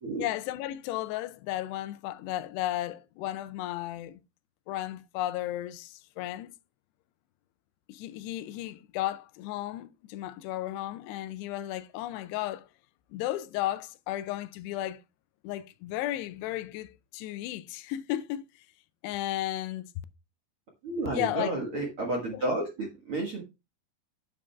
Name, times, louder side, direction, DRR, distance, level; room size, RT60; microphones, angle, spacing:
voice 1, 0.2-4.2 4.7-6.5 7.9-12.7 13.1-15.0 15.4-18.7 19.0-19.9 21.1-21.5 22.3-22.4, left 14 dB, 85° left, 2.7 m, -34 dB
voice 2, 20.8-23.4, right 2 dB, 55° right, 1.5 m, -31 dB
9.6 x 8.5 x 2.3 m
omnidirectional pair, 4.8 m